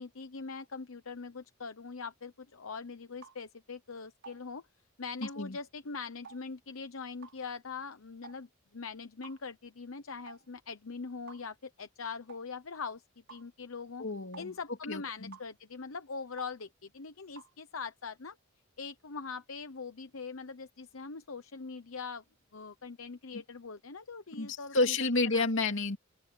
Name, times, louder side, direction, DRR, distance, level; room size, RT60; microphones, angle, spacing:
voice 1, 0.0-4.6 5.0-13.0 13.3-14.0 14.4-18.4 18.8-22.2 22.5-25.7, left 4 dB, 80° left, 1.0 m, -42 dB
sound 1, 3.2-3.4 4.2-4.4 5.2-5.4 6.2-6.4 7.2-7.4 8.2-8.4 9.2-9.4 10.3-10.4 11.3-11.5 12.3-12.5 13.3-13.5 14.3-14.5 15.3-15.5 16.4-16.6 17.4-17.5, right 5 dB, 60° right, 6.2 m, -51 dB
voice 2, 5.2-5.6 14.0-14.5 14.9-15.3 24.4-26.0, left 3 dB, 65° left, 2.7 m, -30 dB
head